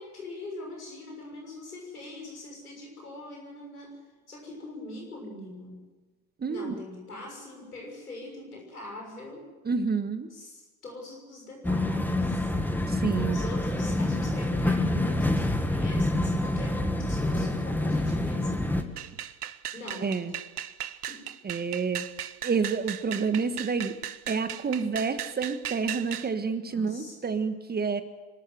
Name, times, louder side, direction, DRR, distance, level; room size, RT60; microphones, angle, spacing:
voice 1, 0.0-3.9 4.3-5.9 6.5-9.5 10.3-12.5 13.1-18.8 19.7-20.1 20.8-21.2 26.6-27.1, left 2 dB, 90° left, 0 dB, 6.5 m, -42 dB
voice 2, 6.4-6.7 9.6-10.3 12.9-13.4 20.0-20.3 21.4-22.1 22.4-24.0 24.3-28.0, right 5 dB, 20° right, 10 dB, 1.4 m, -29 dB
sound 1, 11.6-18.8, left 1 dB, 5° left, 1.8 m, -27 dB
sound 2, 19.0-26.3, right 10 dB, 90° right, 0.8 m, -37 dB
25.0 x 13.5 x 7.9 m, 1.2 s
hypercardioid pair, 75°, 44 cm